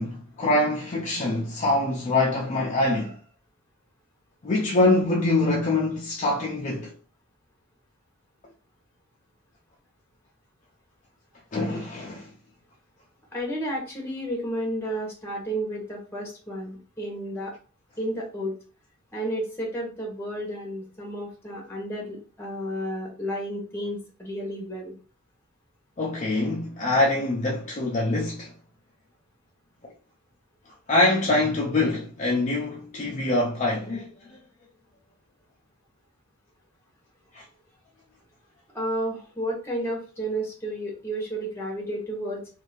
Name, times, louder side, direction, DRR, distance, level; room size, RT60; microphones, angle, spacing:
voice 1, 0.0-3.2 4.4-6.9 11.5-12.3 26.0-28.5 30.9-34.4 37.3-37.4, left 2 dB, 35° left, 0.5 m, -24 dB
voice 2, 13.3-17.5 18.0-18.5 19.1-24.9 38.7-42.5, right 1 dB, 10° left, 1.0 m, -32 dB
2.7 x 2.4 x 3.3 m
head